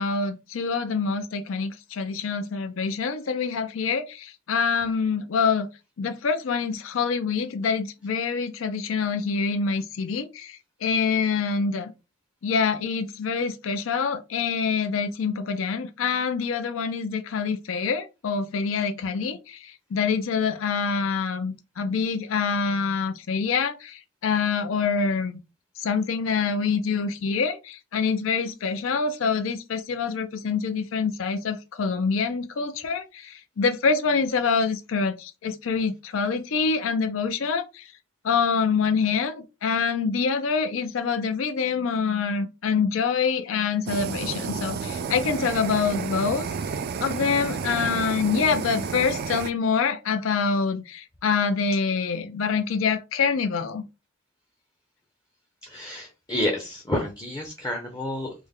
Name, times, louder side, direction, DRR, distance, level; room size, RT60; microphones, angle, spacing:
voice 1, 0.0-5.7 6.0-11.9 12.4-25.4 25.8-37.9 38.2-46.5 47.0-53.8, left 5 dB, 75° left, 0.4 m, -26 dB
Fire, 43.9-49.5, right 5 dB, 50° right, 0.3 m, -31 dB
voice 2, 55.6-58.3, left 1 dB, 20° left, 0.6 m, -29 dB
3.4 x 2.1 x 3.5 m
head